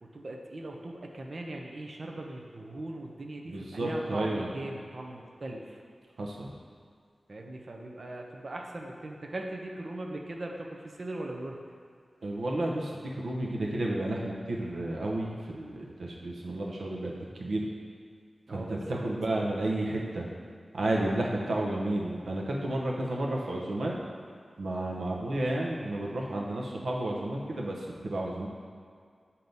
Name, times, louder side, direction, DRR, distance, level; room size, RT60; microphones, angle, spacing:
voice 1, 0.0-5.8 7.3-11.6 18.5-19.0, right 1 dB, 50° right, 1 dB, 0.7 m, -40 dB
voice 2, 3.4-4.5 6.2-6.5 12.2-17.7 18.5-20.3 20.7-23.9 24.6-28.5, right 1 dB, 90° right, -2 dB, 0.8 m, -32 dB
7.8 x 2.8 x 5.3 m, 2.1 s
wide cardioid pair, 100°, 0 cm